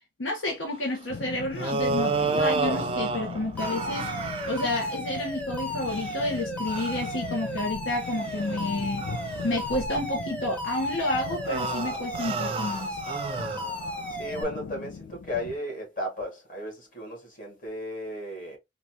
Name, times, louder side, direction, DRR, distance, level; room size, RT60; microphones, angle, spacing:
voice 1, 0.2-9.1 9.4-13.0, left 1 dB, 85° left, 1.0 m, -30 dB
sound 1, 1.1-15.6, left 5 dB, 65° left, 0.4 m, -40 dB
sound 2, 1.5-4.8 5.8-6.2 6.7-7.1 7.7-7.8 8.2-8.4 9.0-10.0 11.2-14.1, right 3 dB, 30° right, 0.4 m, -31 dB
Alarm, 3.6-14.4, equal, 10° left, 0.7 m, -35 dB
voice 2, 14.2-18.6, left 1 dB, 45° left, 1.9 m, -35 dB
4.0 x 2.4 x 2.7 m
head